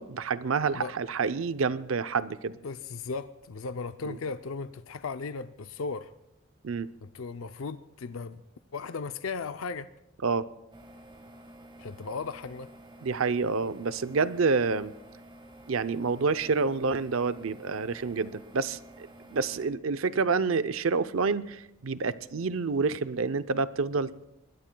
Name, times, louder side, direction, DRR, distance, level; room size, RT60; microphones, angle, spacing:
voice 1, 0.0-2.5 4.0-4.2 6.6-6.9 10.2-10.5 13.0-14.9 15.7-24.2, right 4 dB, 70° right, 13 dB, 0.6 m, -28 dB
voice 2, 2.6-6.1 7.0-8.4 8.7-9.9 11.8-12.7, left 4 dB, 75° left, 10 dB, 0.5 m, -36 dB
sound 1, 10.7-19.7, right 1 dB, 25° right, 1.5 m, -51 dB
25.0 x 21.0 x 2.3 m, 0.85 s
head